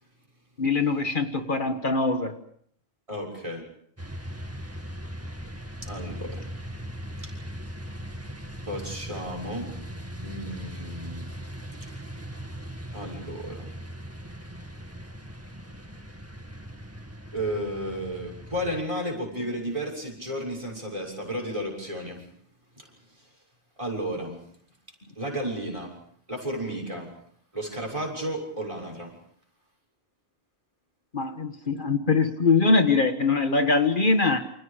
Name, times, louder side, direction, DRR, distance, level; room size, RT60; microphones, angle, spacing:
voice 1, 0.6-2.3 31.1-34.5, left 3 dB, 55° left, 7 dB, 1.7 m, -23 dB
voice 2, 3.1-3.6 5.8-6.4 8.7-9.7 10.2-11.3 12.9-13.7 17.3-22.3 22.8-22.9 23.8-24.4 25.2-26.0 26.3-27.1 27.5-29.2, equal, 30° right, 2 dB, 6.9 m, -33 dB
sound 1, 4.0-18.8, equal, 15° right, 2.2 m, -39 dB
29.0 x 27.0 x 5.1 m, 0.64 s
omnidirectional pair, 1.0 m